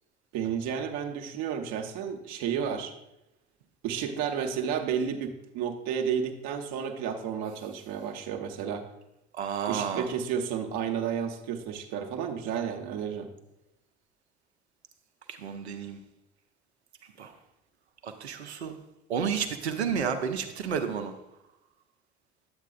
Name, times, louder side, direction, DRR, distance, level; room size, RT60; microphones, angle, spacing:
voice 1, 0.3-2.9 3.8-8.9 9.7-13.3, right 7 dB, 60° right, 4 dB, 0.9 m, -32 dB
voice 2, 9.3-10.1 15.3-16.0 17.2-17.3 18.0-18.8 19.1-21.1, right 7 dB, 85° right, 6 dB, 0.7 m, -31 dB
9.6 x 8.2 x 2.4 m, 0.91 s
figure-of-eight pair, 55°, 32 cm